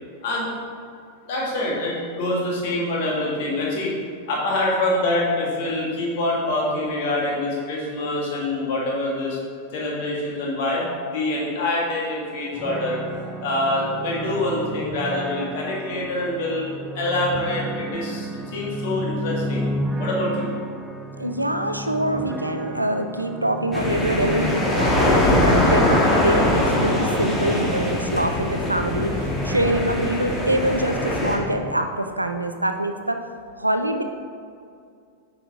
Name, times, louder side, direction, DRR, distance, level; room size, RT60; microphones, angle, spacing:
voice 1, 0.2-0.5 1.3-3.9 4.3-9.4 9.7-13.0 13.4-16.7 17.0-19.7 20.0-20.5, left 1 dB, 50° left, -3 dB, 1.8 m, -25 dB
sound 1, 12.5-31.7, right 1 dB, 10° right, 0.4 m, -33 dB
voice 2, 21.2-34.0, right 1 dB, 85° right, 6 dB, 0.5 m, -25 dB
sound 2, 23.7-31.4, left 1 dB, 10° left, 1.3 m, -22 dB
8.3 x 4.9 x 3.6 m, 2.3 s
figure-of-eight pair, 90°, 0 cm